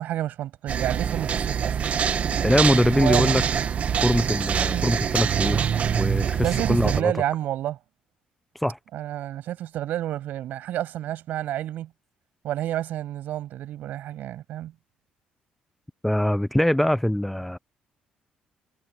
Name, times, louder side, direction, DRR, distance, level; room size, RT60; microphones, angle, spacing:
voice 1, 0.0-1.8 2.9-3.4 4.7-4.9 6.4-7.8 8.9-11.9 12.4-14.7, right 12 dB, 75° right, 7.4 m, -29 dB
sound 1, 0.7-7.0, right 7 dB, 50° right, 1.8 m, -25 dB
voice 2, 2.4-3.4 4.0-5.7 5.9-7.1 8.5-8.8 16.0-17.6, left 1 dB, 5° left, 0.8 m, -23 dB
cardioid pair, 90°, 3 cm